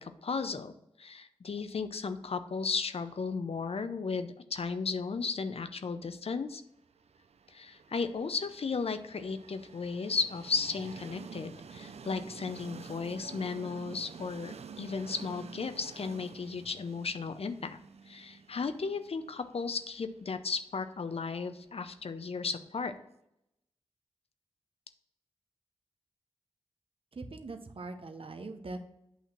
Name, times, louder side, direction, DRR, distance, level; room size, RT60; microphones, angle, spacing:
voice 1, 0.0-6.6 7.5-17.8 18.1-22.9, left 4 dB, 65° left, 10 dB, 0.6 m, -35 dB
Train, 7.0-22.8, right 6 dB, 75° right, 0.4 m, -49 dB
voice 2, 27.1-28.8, right 3 dB, 60° right, 6 dB, 0.9 m, -42 dB
8.4 x 2.9 x 5.8 m, 0.79 s
cardioid pair, 40°, 11 cm